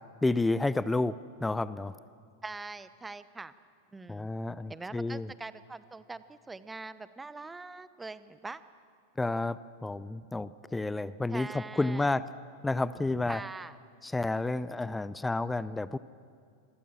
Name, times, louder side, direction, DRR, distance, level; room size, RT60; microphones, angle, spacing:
voice 1, 0.2-2.0 4.1-5.3 9.2-12.2 12.6-13.4 14.0-16.0, left 2 dB, 10° left, 17 dB, 0.6 m, -30 dB
voice 2, 2.4-3.5 3.9-4.3 4.7-8.6 11.3-12.1 13.3-13.7, right 3 dB, 10° right, 15 dB, 1.0 m, -43 dB
27.5 x 22.5 x 7.4 m, 2.3 s
figure-of-eight pair, 90°, 0 cm